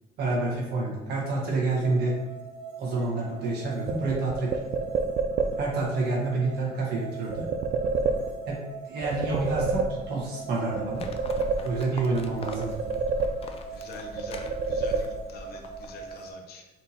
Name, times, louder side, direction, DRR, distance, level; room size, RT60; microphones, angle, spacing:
voice 1, 0.2-2.2 2.8-4.5 5.6-7.5 8.5-8.6 8.9-11.1 11.6-12.8, right 3 dB, 70° right, -3 dB, 1.5 m, -28 dB
sound 1, 1.7-16.3, right 5 dB, 30° right, 1.3 m, -42 dB
sound 2, 3.9-5.8 7.3-8.7 9.0-10.4 10.7-12.1 12.4-13.8 14.2-15.5, right 4 dB, 50° right, 0.4 m, -29 dB
Livestock farm animals working animals, 10.9-16.1, left 2 dB, 35° left, 0.5 m, -43 dB
voice 2, 13.7-16.7, left 3 dB, 65° left, 2 dB, 0.8 m, -44 dB
4.2 x 3.6 x 2.9 m, 1.1 s
cardioid pair, 110°, 17 cm